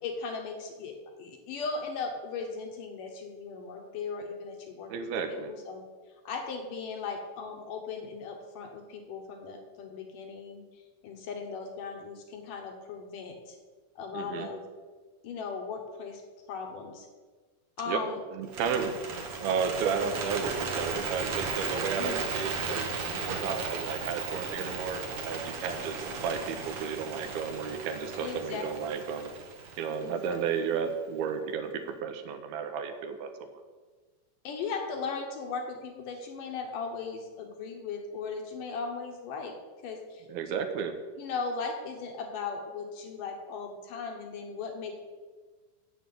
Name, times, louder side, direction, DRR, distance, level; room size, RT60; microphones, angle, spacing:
voice 1, 0.0-4.9 5.3-5.8 6.3-13.6 14.0-14.6 15.2-16.2 16.5-17.1 17.8-18.2 22.0-22.2 28.2-29.0 30.0-30.6 34.4-39.5 39.8-40.3 41.2-45.0, left 5 dB, 70° left, 3 dB, 2.4 m, -37 dB
voice 2, 4.9-5.5 14.1-14.5 17.9-18.0 18.3-18.9 19.3-29.3 29.8-33.3 40.3-40.9, right 6 dB, 80° right, 7 dB, 2.8 m, -33 dB
Bird, 18.4-30.6, right 4 dB, 60° right, 1.5 m, -36 dB
7.7 x 7.4 x 8.5 m, 1.4 s
omnidirectional pair, 4.4 m